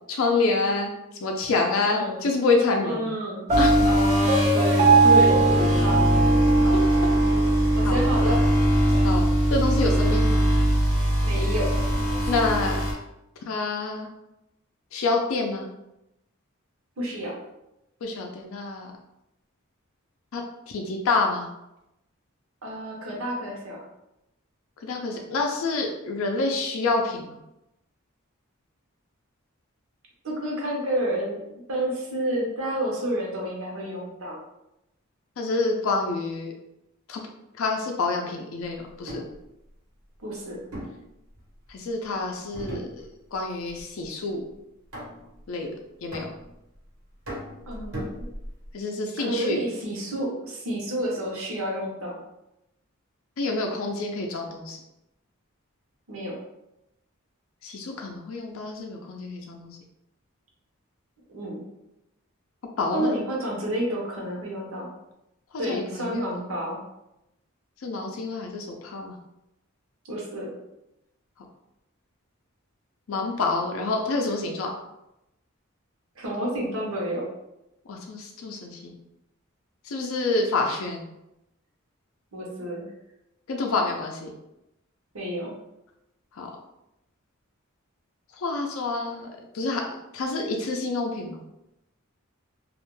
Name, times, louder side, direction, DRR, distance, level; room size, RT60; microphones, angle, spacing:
voice 1, 0.1-0.9 1.2-3.1 3.6-3.9 6.7-6.8 7.8-8.0 9.0-10.4 12.3-12.8 13.5-14.1 14.9-15.7 18.0-18.9 20.3-21.5 24.8-27.4 35.4-36.5 37.1-37.2 37.6-39.2 41.7-43.0 43.3-44.4 45.5-45.7 46.0-46.3 48.7-49.6 53.4-54.8 57.6-59.8 62.8-63.1 65.6-66.3 67.8-69.2 73.1-74.7 77.9-79.0 79.8-81.0 83.5-84.3 86.4-86.5 88.4-89.3 89.5-91.4, left 3 dB, 70° left, 1 dB, 0.4 m, -27 dB
voice 2, 1.8-2.2 2.8-6.1 6.6-6.8 7.1-8.4 11.2-11.7 17.0-17.3 22.6-23.8 30.2-34.4 40.2-40.6 47.7-48.3 49.2-52.2 56.1-56.4 61.3-61.6 62.9-64.9 65.6-66.8 70.1-70.5 76.2-77.2 82.3-82.8 85.1-85.5, right 1 dB, 70° right, -2 dB, 0.8 m, -30 dB
sound 1, 3.5-12.9, right 1 dB, 15° left, 0.6 m, -21 dB
Piano, 3.5-7.4, right 4 dB, 30° right, 0.4 m, -21 dB
sound 2, 38.9-39.4 40.7-41.8 42.5-43.4 43.7-44.1 44.9-45.4 46.1-46.8 47.3-48.7, equal, 85° right, 1.1 m, -38 dB
2.3 x 2.1 x 3.0 m, 0.88 s
head